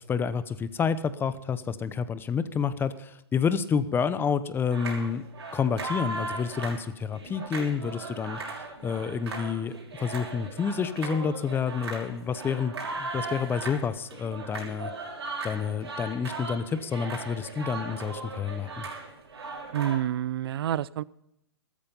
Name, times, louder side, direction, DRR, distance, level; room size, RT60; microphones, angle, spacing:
voice 1, 0.0-5.2 5.5-12.7 13.0-14.9 15.4-18.9, left 6 dB, 15° left, 14 dB, 0.8 m, -29 dB
sound 1, 4.7-20.0, right 3 dB, 85° right, 5.9 m, -38 dB
voice 2, 19.7-21.0, right 11 dB, 65° right, 22 dB, 0.5 m, -28 dB
14.0 x 13.5 x 5.4 m, 0.82 s
hypercardioid pair, 130°, 14 cm